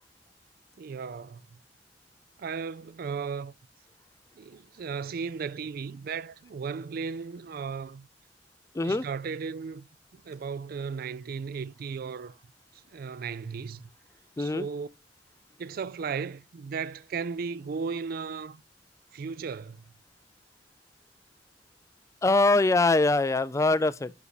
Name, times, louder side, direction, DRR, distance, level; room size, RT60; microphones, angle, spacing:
voice 1, 0.8-1.4 2.4-3.5 4.4-8.1 8.8-9.9 10.1-12.4 12.9-13.9 14.4-14.9 15.6-18.6 19.1-19.8, right 5 dB, 55° right, 0.4 m, -35 dB
voice 2, 8.7-9.1 14.4-14.7 22.2-24.1, left 2 dB, 15° left, 0.3 m, -23 dB
11.0 x 4.7 x 4.0 m
head